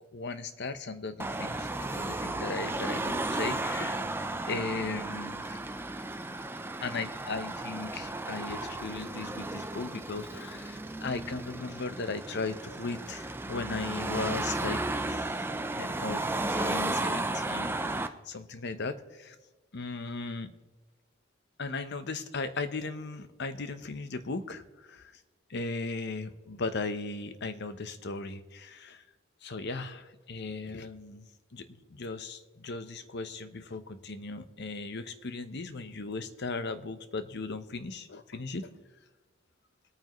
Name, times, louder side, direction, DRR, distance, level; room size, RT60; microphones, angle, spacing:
voice 1, 0.1-4.0 4.4-5.6 6.8-15.3 15.7-19.4 19.7-20.5 21.6-25.2 25.5-29.0 29.4-38.7, left 3 dB, 60° left, 11 dB, 0.9 m, -37 dB
Car passing by / Traffic noise roadway noise / Engine, 1.2-18.1, right 2 dB, 10° right, 0.5 m, -34 dB
21.5 x 9.2 x 3.1 m, 1.2 s
head